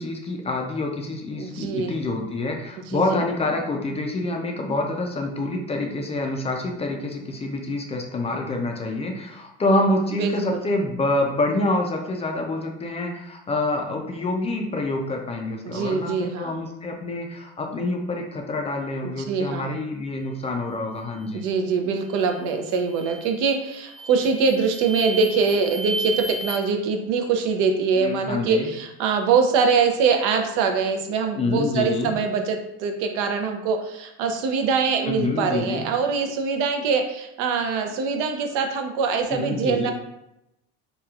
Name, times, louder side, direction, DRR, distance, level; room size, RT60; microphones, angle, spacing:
voice 1, 0.0-21.5 28.0-28.7 31.4-32.2 35.1-35.9 39.3-39.9, left 2 dB, 20° left, 2 dB, 0.3 m, -27 dB
voice 2, 1.4-1.9 2.9-3.2 10.2-10.6 15.6-16.6 19.0-19.7 21.3-39.9, right 5 dB, 75° right, 5 dB, 0.5 m, -23 dB
sound 1, 22.1-22.4 22.9-23.4 23.9-26.5, right 2 dB, 35° right, 0.8 m, -33 dB
2.9 x 2.3 x 2.3 m, 0.86 s
supercardioid pair, 95°, 31 cm